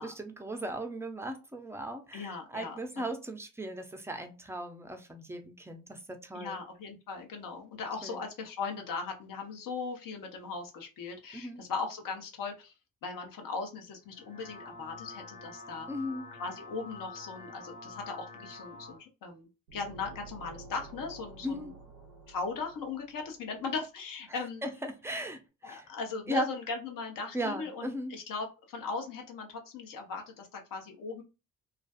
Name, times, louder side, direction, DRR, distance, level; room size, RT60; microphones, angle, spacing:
voice 1, 0.0-6.6 8.0-8.2 11.3-11.7 15.9-16.3 21.4-21.7 24.6-25.9 26.3-26.5 27.3-28.2, right 1 dB, 5° right, 0.5 m, -37 dB
voice 2, 2.1-3.0 6.3-12.7 13.0-15.9 16.4-21.7 22.3-24.6 25.6-31.2, left 4 dB, 50° left, 0.9 m, -38 dB
sound 1, 14.0-19.0, left 3 dB, 75° left, 1.4 m, -47 dB
sound 2, 19.7-23.4, right 3 dB, 85° right, 0.6 m, -50 dB
2.4 x 2.4 x 2.3 m
figure-of-eight pair, 45°, 42 cm